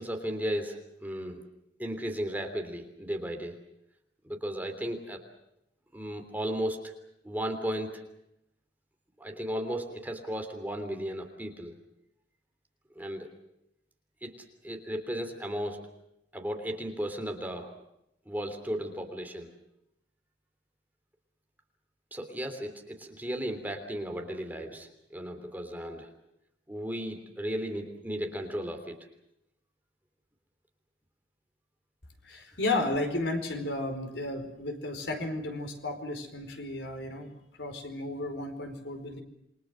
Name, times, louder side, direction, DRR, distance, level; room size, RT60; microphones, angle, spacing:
voice 1, 0.0-1.4 1.8-3.6 4.2-5.2 5.9-6.8 7.2-7.9 9.2-11.7 12.9-13.3 14.2-14.3 14.6-15.9 16.3-17.7 18.2-19.5 22.1-26.1 26.7-29.0, equal, 10° right, 4 dB, 3.2 m, -35 dB
voice 2, 32.2-37.3 37.6-39.2, left 2 dB, 75° left, 6 dB, 4.7 m, -33 dB
28.5 x 23.5 x 6.3 m, 0.80 s
head